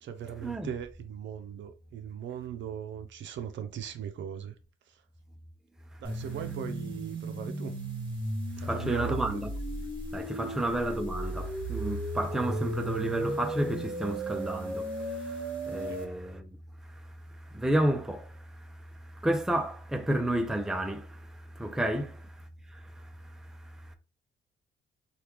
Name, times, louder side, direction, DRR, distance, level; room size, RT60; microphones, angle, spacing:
voice 1, 0.0-4.6 4.9-5.0 6.0-7.7 8.6-9.4 10.4-10.6 15.9-16.0 21.9-22.0, right 9 dB, 70° right, 0.5 m, -39 dB
sound 1, 6.0-16.0, right 1 dB, 25° right, 1.2 m, -35 dB
voice 2, 8.6-9.5 10.1-16.6 16.8-23.9, right 1 dB, 5° right, 0.5 m, -32 dB
2.8 x 2.4 x 3.4 m
cardioid pair, 90°, 20 cm